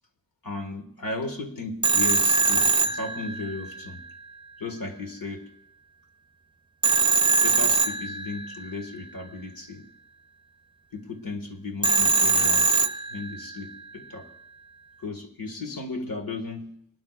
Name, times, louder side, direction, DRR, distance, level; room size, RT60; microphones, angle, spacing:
voice 1, 0.4-4.0 4.6-5.5 7.4-9.9 10.9-14.3 15.0-16.9, left 3 dB, 80° left, 4 dB, 1.7 m, -35 dB
Telephone, 1.8-3.8 6.8-8.6 11.8-13.5, right 4 dB, 15° right, 0.6 m, -22 dB
23.0 x 12.5 x 2.4 m, 0.72 s
wide cardioid pair, 85°, 34 cm